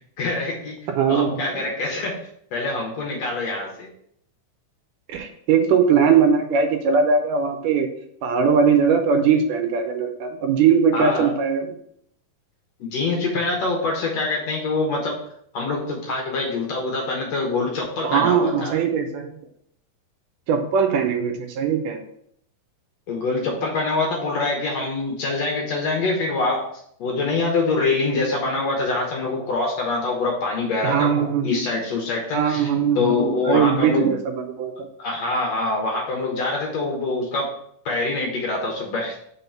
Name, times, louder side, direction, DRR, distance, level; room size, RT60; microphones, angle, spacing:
voice 1, 0.2-0.8 1.1-3.9 10.9-11.3 12.8-15.2 15.5-18.8 23.1-26.7 27.0-34.1 35.0-37.6 37.9-39.2, left 3 dB, 65° left, -1 dB, 1.9 m, -25 dB
voice 2, 0.9-1.5 5.1-7.9 8.2-11.8 18.0-19.4 20.5-22.0 30.8-31.6 32.3-34.7, right 6 dB, 80° right, 6 dB, 2.2 m, -20 dB
5.6 x 3.8 x 5.7 m, 0.70 s
omnidirectional pair, 3.9 m